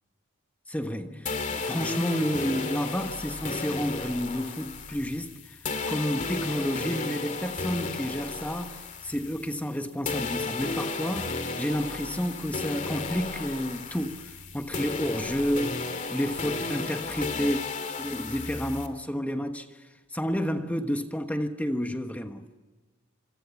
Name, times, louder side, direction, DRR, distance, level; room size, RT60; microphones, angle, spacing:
voice 1, 0.7-5.6 5.9-15.8 16.1-17.6 18.0-22.5, equal, 10° left, 1.3 m, -30 dB
sound 1, 1.3-9.8 10.1-18.9, left 3 dB, 40° left, 2.5 m, -34 dB
27.0 x 25.5 x 7.1 m
head